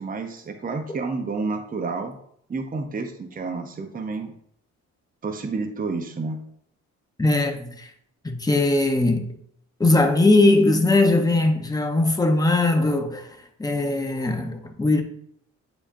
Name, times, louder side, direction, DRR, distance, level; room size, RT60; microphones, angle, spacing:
voice 1, 0.0-2.2 2.5-4.3 5.2-6.4, right 4 dB, 30° right, 0.8 m, -30 dB
voice 2, 7.2-7.9 8.2-9.3 9.8-13.3 13.6-15.0, left 2 dB, 10° left, 1.0 m, -20 dB
8.4 x 5.0 x 2.6 m
cardioid pair, 90°, 30 cm